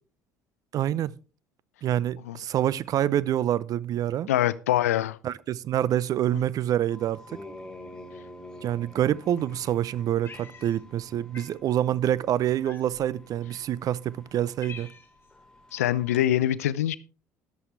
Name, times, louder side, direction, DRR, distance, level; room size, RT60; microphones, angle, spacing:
voice 1, 0.7-1.1 1.8-4.3 5.2-7.4 8.6-14.9, right 11 dB, 50° right, 0.6 m, -26 dB
voice 2, 4.3-5.2 15.7-16.9, left 12 dB, 80° left, 0.6 m, -24 dB
sound 1, 6.9-16.2, left 1 dB, 10° left, 3.9 m, -48 dB
Cat, 10.2-11.0 11.3-11.6 12.6-13.2 13.9-14.0 14.3-15.3, left 6 dB, 30° left, 2.7 m, -46 dB
13.5 x 11.0 x 3.3 m
hypercardioid pair, 60°, 8 cm